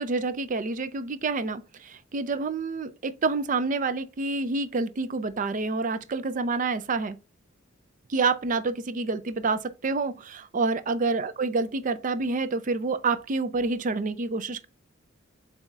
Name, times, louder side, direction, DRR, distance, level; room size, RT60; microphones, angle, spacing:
voice 1, 0.0-7.2 8.1-14.7, right 3 dB, 40° right, 0.4 m, -28 dB
7.0 x 2.8 x 2.4 m
head